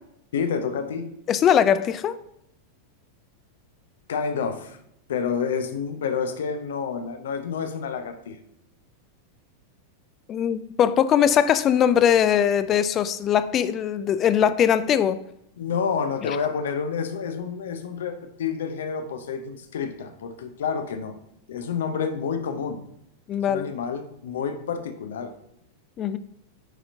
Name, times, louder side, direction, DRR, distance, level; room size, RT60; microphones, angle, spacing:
voice 1, 0.3-1.1 4.1-4.8 5.1-8.4 15.6-21.2 21.5-22.8 23.5-25.3, left 6 dB, 60° left, 8 dB, 0.6 m, -29 dB
voice 2, 1.3-2.2 10.3-15.2 16.2-16.4 23.3-23.7 26.0-26.2, left 9 dB, 30° left, 14 dB, 0.3 m, -21 dB
8.9 x 4.3 x 2.6 m, 0.79 s
figure-of-eight pair, 90°, 0 cm